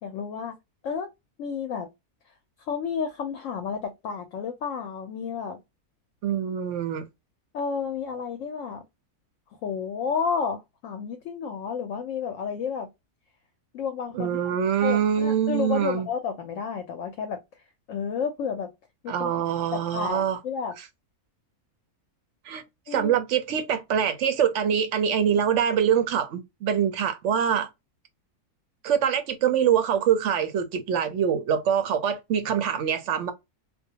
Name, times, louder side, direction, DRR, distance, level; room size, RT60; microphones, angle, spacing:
voice 1, 0.0-0.6 0.8-1.1 1.4-1.9 2.7-5.6 7.5-8.8 9.6-12.9 13.7-14.4 14.8-17.4 17.9-18.7 19.0-19.3 19.7-20.7 22.9-23.1, left 6 dB, 70° left, 0.8 m, -31 dB
voice 2, 6.2-7.1 14.1-16.1 19.1-20.4 22.5-22.6 22.9-27.7 28.8-33.3, right 8 dB, 65° right, 0.8 m, -24 dB
2.4 x 2.2 x 2.7 m
omnidirectional pair, 1.6 m